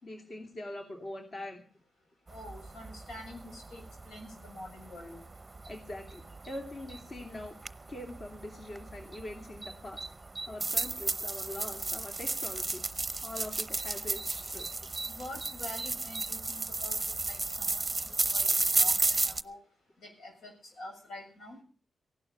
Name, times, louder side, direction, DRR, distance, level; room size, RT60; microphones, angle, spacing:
voice 1, 0.0-1.6 5.7-7.6 7.9-10.1 10.5-12.8 13.2-14.7, left 1 dB, 45° left, 2 dB, 2.8 m, -43 dB
voice 2, 2.3-5.2 15.0-17.0 17.3-18.0 18.3-19.6 20.0-21.6, left 1 dB, 85° left, 2 dB, 7.2 m, -46 dB
sound 1, 2.3-19.4, right 3 dB, 20° right, 0.7 m, -34 dB
16.0 x 11.5 x 6.8 m, 0.40 s
wide cardioid pair, 105°, 0 cm